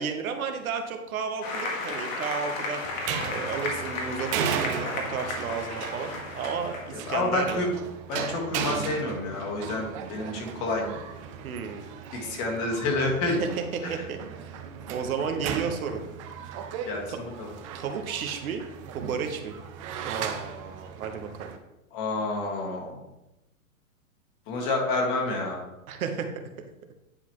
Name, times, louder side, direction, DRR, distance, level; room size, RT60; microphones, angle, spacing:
voice 1, 0.0-2.8 3.2-7.7 11.4-11.8 13.3-14.6 14.9-16.0 17.1-17.2 17.7-19.5 20.0-21.5 25.9-26.3, right 6 dB, 75° right, 5 dB, 1.1 m, -33 dB
Applause, 1.4-7.1, left 3 dB, 70° left, 1.7 m, -34 dB
sound 1, 2.8-21.6, right 7 dB, 25° right, 0.4 m, -36 dB
voice 2, 6.9-7.7 8.1-10.8 12.1-13.4 13.8-14.0 16.9-17.5 21.9-23.0 24.5-25.6, left 2 dB, 40° left, 0 dB, 1.9 m, -29 dB
9.9 x 4.0 x 3.1 m, 0.94 s
hypercardioid pair, 135°, 42 cm